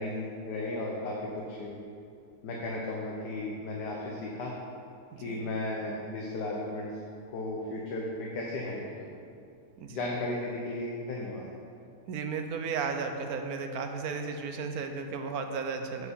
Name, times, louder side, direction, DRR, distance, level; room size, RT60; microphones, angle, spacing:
voice 1, 0.0-1.8 2.4-4.5 5.2-6.9 7.3-9.2 9.9-11.5, left 2 dB, 85° left, -2 dB, 1.5 m, -35 dB
voice 2, 5.1-5.5 9.8-10.0 12.1-16.1, right 5 dB, 70° right, 5 dB, 1.1 m, -34 dB
8.9 x 4.5 x 6.9 m, 2.4 s
omnidirectional pair, 1.8 m